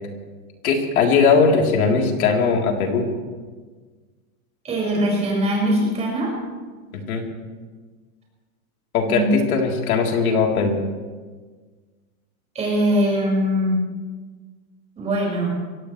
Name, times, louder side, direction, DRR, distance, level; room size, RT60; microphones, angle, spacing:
voice 1, 0.6-3.1 6.9-7.3 8.9-10.8, left 5 dB, 80° left, 1 dB, 3.7 m, -19 dB
voice 2, 4.6-6.3 9.1-9.3 12.5-13.8 15.0-15.6, equal, 15° right, -3 dB, 5.9 m, -21 dB
24.0 x 18.0 x 3.3 m, 1.4 s
supercardioid pair, 165°, 42 cm